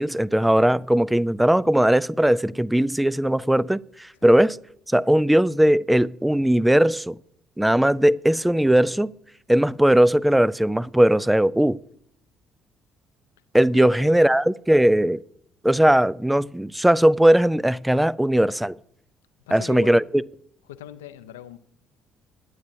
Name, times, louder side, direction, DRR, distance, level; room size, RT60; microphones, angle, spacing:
voice 1, 0.0-4.6 4.9-7.2 7.6-9.1 9.5-11.8 13.5-15.2 15.6-18.8 19.5-20.2, right 1 dB, 5° right, 0.4 m, -19 dB
voice 2, 13.7-14.2 19.5-20.0 20.7-21.6, left 12 dB, 75° left, 0.6 m, -40 dB
21.0 x 9.4 x 2.8 m
figure-of-eight pair, 50°, 0 cm